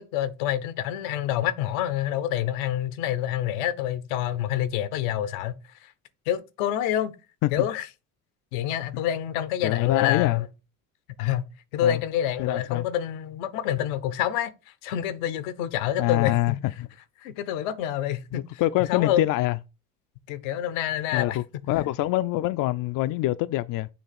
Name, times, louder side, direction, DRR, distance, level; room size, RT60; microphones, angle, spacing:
voice 1, 0.0-5.9 6.3-7.1 7.5-7.9 8.5-10.5 11.2-11.4 11.7-14.5 14.8-16.6 17.2-18.6 18.9-19.3 20.3-21.4, left 11 dB, 85° left, 0.9 m, -27 dB
voice 2, 9.6-10.4 11.8-12.0 12.4-12.9 16.0-16.5 16.8-16.9 18.3-19.6 21.1-23.9, left 16 dB, 55° left, 0.5 m, -25 dB
7.0 x 3.0 x 5.8 m
supercardioid pair, 80°, 39 cm